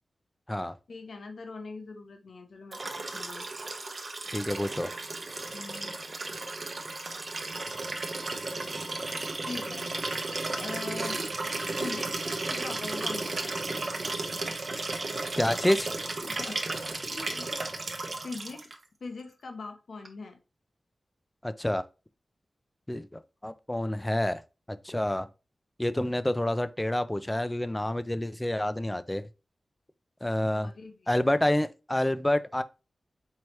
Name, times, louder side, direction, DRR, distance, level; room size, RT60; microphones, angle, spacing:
voice 1, 0.9-3.4 5.5-6.0 9.5-9.9 10.6-11.2 11.8-12.2 12.5-13.6 16.3-16.7 17.1-17.5 18.2-18.7 19.0-20.4 30.5-31.1, left 3 dB, 80° left, 0.8 m, -42 dB
Liquid, 2.7-18.8 20.0-20.1, right 2 dB, 55° right, 0.7 m, -34 dB
voice 2, 4.3-4.9 15.4-15.9 21.4-21.8 22.9-24.4 24.7-25.3 25.8-29.2 30.2-30.7 31.1-32.6, left 1 dB, 15° left, 0.4 m, -28 dB
4.7 x 3.2 x 2.8 m
wide cardioid pair, 75°, 0 cm